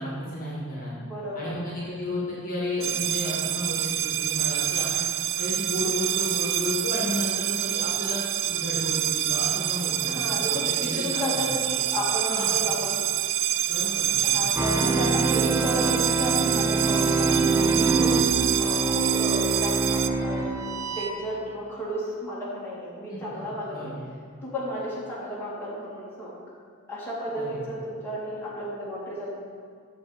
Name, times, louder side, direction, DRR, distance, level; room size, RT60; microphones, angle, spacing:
voice 1, 0.0-0.9 1.3-5.0 5.4-10.4 10.8-11.4 12.2-12.6 13.6-14.5 17.7-18.0 23.1-23.2 23.6-24.1 27.4-27.5, left 1 dB, 40° left, -6 dB, 1.8 m, -33 dB
voice 2, 1.0-1.5 10.0-12.9 14.2-23.8 24.4-26.3 26.9-29.3, equal, 10° left, -9 dB, 2.2 m, -33 dB
sound 1, 2.8-20.1, right 12 dB, 60° right, 0.3 m, -27 dB
sound 2, 14.6-21.1, right 3 dB, 15° right, 0.5 m, -25 dB
7.8 x 6.8 x 4.0 m, 2.2 s
head